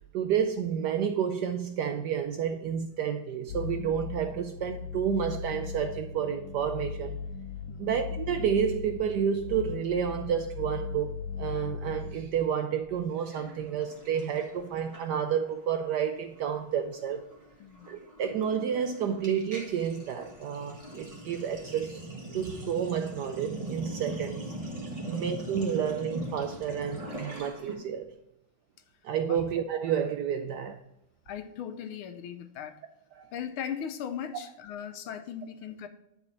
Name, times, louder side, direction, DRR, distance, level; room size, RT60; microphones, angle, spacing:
voice 1, 0.1-7.2 7.8-17.3 17.9-22.0 22.3-24.5 25.1-28.1 29.0-30.8 33.2-33.3, right 8 dB, 75° right, 0.9 m, -30 dB
sound 1, 3.5-12.2, left 6 dB, 50° left, 1.2 m, -38 dB
Sink (filling or washing), 13.3-15.5 15.8-16.1 16.3-27.8, right 1 dB, 20° right, 1.4 m, -41 dB
voice 2, 31.3-32.8 33.3-35.9, left 8 dB, 90° left, 1.6 m, -38 dB
10.0 x 4.2 x 4.1 m
omnidirectional pair, 2.2 m